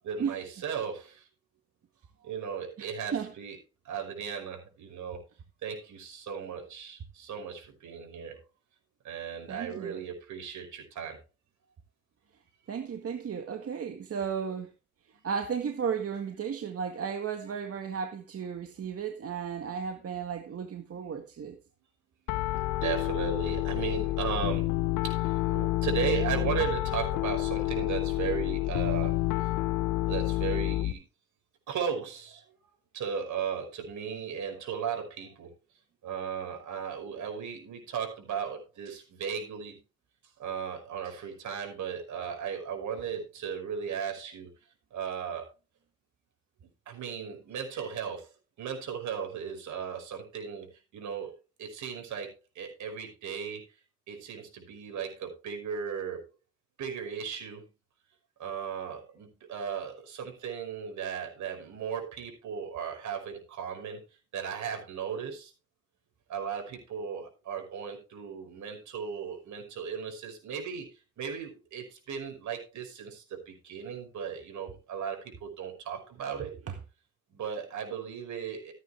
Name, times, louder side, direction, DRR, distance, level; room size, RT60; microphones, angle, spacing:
voice 1, 0.0-1.3 2.2-3.6 3.8-5.2 5.6-8.4 9.0-11.2 20.9-21.0 22.6-24.8 25.0-29.2 30.1-31.0 31.7-32.4 32.9-35.5 36.0-39.8 40.4-44.5 44.9-45.5 46.9-48.3 48.6-53.6 54.1-56.2 56.8-57.7 58.4-64.0 64.3-65.5 66.3-76.6 77.3-78.7, right 7 dB, 75° right, 5.6 m, -36 dB
voice 2, 2.8-3.3 9.5-10.0 12.7-14.7 15.2-21.6 76.4-76.8, right 7 dB, 50° right, 1.8 m, -34 dB
Piano, 22.3-30.9, left 16 dB, 90° left, 0.8 m, -29 dB
14.5 x 9.2 x 3.5 m
cardioid pair, 90°, 30 cm